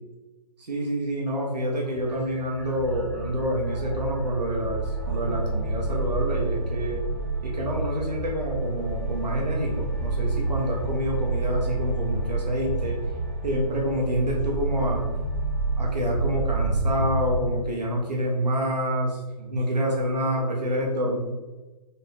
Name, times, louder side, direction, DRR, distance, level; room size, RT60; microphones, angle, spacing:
voice 1, 0.6-7.0 7.4-13.0 13.4-15.0 15.8-21.2, equal, 90° right, -2 dB, 1.1 m, -27 dB
sound 1, 2.0-17.6, right 3 dB, 20° right, 0.4 m, -29 dB
4.1 x 2.7 x 3.9 m, 1.2 s
hypercardioid pair, 160°, 21 cm